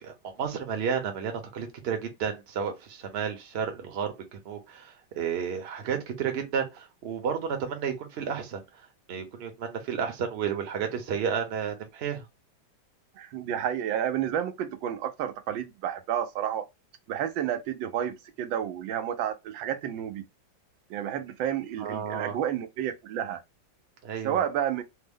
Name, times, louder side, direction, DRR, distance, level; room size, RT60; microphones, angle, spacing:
voice 1, 0.0-8.6 9.1-12.2 21.8-22.3 24.0-24.4, right 7 dB, 50° right, 0.8 m, -32 dB
voice 2, 13.2-16.6 17.1-20.2 20.9-23.4 24.2-24.8, right 10 dB, 85° right, 1.3 m, -30 dB
3.5 x 2.0 x 3.5 m
omnidirectional pair, 2.0 m